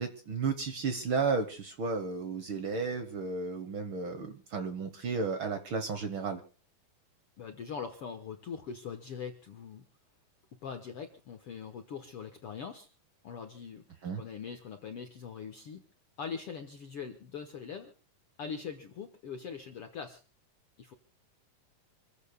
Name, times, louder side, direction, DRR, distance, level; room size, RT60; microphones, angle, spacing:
voice 1, 0.0-6.4 14.0-14.2, right 4 dB, 75° right, 7 dB, 1.2 m, -33 dB
voice 2, 7.4-9.9 10.6-12.9 13.2-13.8 14.1-15.8 16.2-17.9 18.4-20.2 20.8-20.9, left 6 dB, 65° left, 6 dB, 1.5 m, -42 dB
27.5 x 15.5 x 2.2 m, 0.36 s
omnidirectional pair, 4.0 m